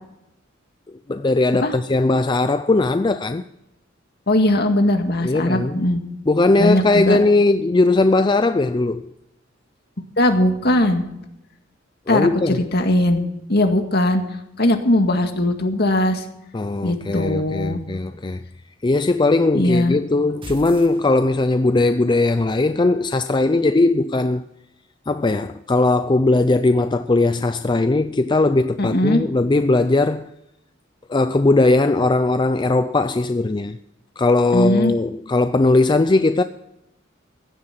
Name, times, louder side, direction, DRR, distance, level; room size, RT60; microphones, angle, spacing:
voice 1, 1.1-3.4 5.2-5.8 6.3-9.1 12.1-12.6 16.5-18.4 18.8-24.4 25.1-30.3 31.1-33.8 34.2-36.4, left 2 dB, 25° left, 0.4 m, -19 dB
voice 2, 4.3-6.0 6.6-7.2 10.2-11.0 12.1-13.2 13.5-14.2 14.6-16.2 16.8-17.8 19.5-19.9 28.8-29.2 34.5-34.9, left 1 dB, 55° left, 1.9 m, -19 dB
sound 1, 20.4-21.7, right 1 dB, 25° right, 1.7 m, -38 dB
16.0 x 11.0 x 5.9 m
head